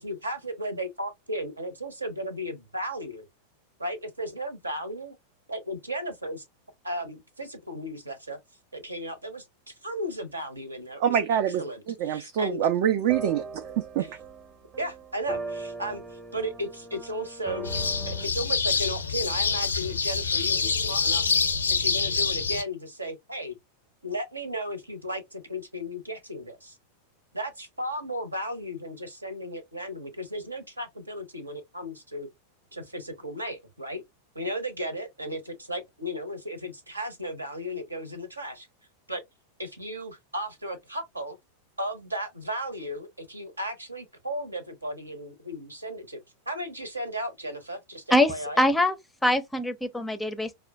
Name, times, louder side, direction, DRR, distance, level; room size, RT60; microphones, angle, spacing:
voice 1, 0.0-3.3 3.8-5.1 5.5-6.4 6.8-8.4 8.7-12.6 14.0-14.1 14.8-17.7 18.1-21.4 21.7-23.5 24.0-26.4 27.3-32.3 32.7-34.0 34.3-38.7 39.1-39.2 39.6-41.4 41.8-46.2 46.5-48.6, equal, 80° right, 0.9 m, -35 dB
voice 2, 11.0-13.6 14.0-14.2, right 9 dB, 50° right, 0.4 m, -25 dB
sound 1, 12.8-12.9 13.1-18.3, right 3 dB, 25° right, 0.8 m, -39 dB
sound 2, 17.6-22.6, left 5 dB, 75° left, 0.5 m, -26 dB
voice 3, 48.1-49.0 49.2-50.6, left 1 dB, 5° left, 0.5 m, -23 dB
4.9 x 2.1 x 2.2 m
figure-of-eight pair, 90°, 0 cm